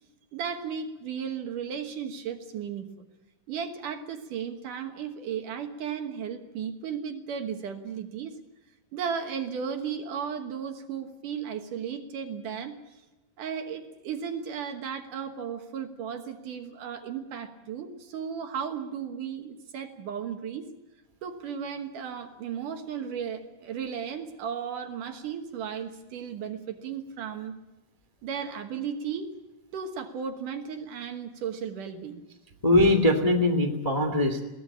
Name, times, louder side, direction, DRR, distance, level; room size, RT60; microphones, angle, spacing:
voice 1, 0.3-3.1 3.5-8.3 8.9-13.0 13.4-20.7 21.2-27.5 28.2-29.3 29.7-32.2, right 7 dB, 65° right, 6 dB, 2.7 m, -35 dB
voice 2, 32.6-34.4, left 1 dB, 15° left, 4 dB, 1.6 m, -21 dB
22.0 x 17.5 x 8.6 m, 1.1 s
omnidirectional pair, 4.4 m